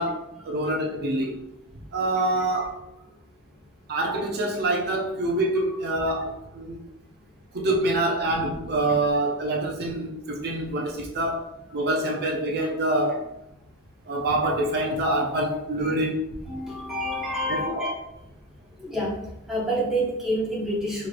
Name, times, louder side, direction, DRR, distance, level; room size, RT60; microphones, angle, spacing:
voice 1, 0.0-1.4 1.9-2.8 3.9-6.8 7.5-11.5 11.7-13.3 14.1-16.2 17.5-17.9, right 1 dB, 45° right, 0 dB, 0.6 m, -26 dB
voice 2, 16.5-17.9 18.8-19.1 19.5-21.1, equal, ahead, -6 dB, 1.2 m, -27 dB
4.4 x 3.1 x 2.5 m, 0.85 s
head